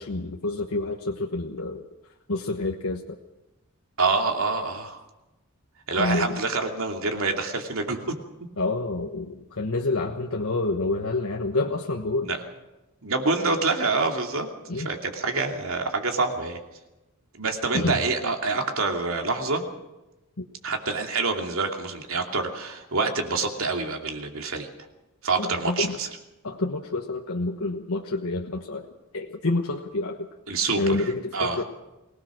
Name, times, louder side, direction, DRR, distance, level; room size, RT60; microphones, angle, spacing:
voice 1, 0.0-1.8 2.3-3.2 6.0-6.4 8.6-12.3 14.7-14.9 17.7-18.0 20.4-20.5 25.4-25.9 26.4-28.9 29.1-30.3 30.8-31.6, left 2 dB, 80° left, 2 dB, 1.3 m, -28 dB
voice 2, 4.0-5.0 5.9-8.1 12.2-12.4 13.0-14.5 14.7-16.6 17.3-19.6 20.6-24.7 25.2-26.1 30.5-31.6, right 3 dB, 75° right, 3 dB, 2.7 m, -26 dB
23.5 x 18.0 x 6.3 m, 1.0 s
head